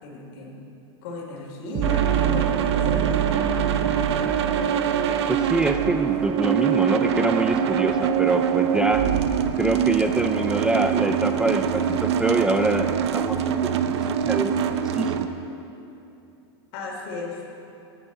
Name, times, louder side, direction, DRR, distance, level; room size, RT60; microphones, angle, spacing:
voice 1, 0.0-0.6 1.0-4.4 16.7-17.4, left 2 dB, 55° left, 0 dB, 3.1 m, -33 dB
sound 1, 1.7-10.4, right 12 dB, 35° right, 0.7 m, -28 dB
sound 2, 1.8-15.3, right 8 dB, 75° right, 0.8 m, -24 dB
voice 2, 5.3-9.1 9.6-13.8 14.1-15.3, right 2 dB, 5° right, 5 dB, 0.4 m, -25 dB
19.5 x 9.9 x 4.1 m, 2.8 s
supercardioid pair, 135°, 14 cm